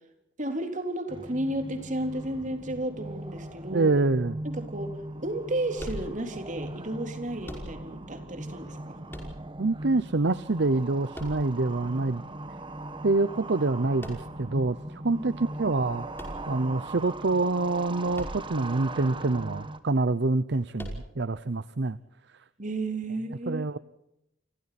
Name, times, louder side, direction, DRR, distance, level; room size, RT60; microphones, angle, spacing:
voice 1, 0.4-3.9 4.4-9.0 15.0-15.2 22.6-23.7, right 1 dB, 40° right, 6 dB, 3.8 m, -33 dB
sound 1, 1.1-19.8, right 2 dB, 25° right, 1.5 m, -40 dB
voice 2, 3.7-4.4 9.6-12.2 13.0-16.1 16.5-22.0 23.5-23.8, right 3 dB, 65° right, 15 dB, 0.7 m, -26 dB
sound 2, 5.8-6.5 7.4-8.1 9.1-9.8 11.1-11.9 14.0-14.6 16.1-17.0 18.1-18.7 19.0-19.1 20.7-21.4, equal, 10° left, 5.4 m, -41 dB
29.5 x 25.0 x 4.2 m, 0.84 s
head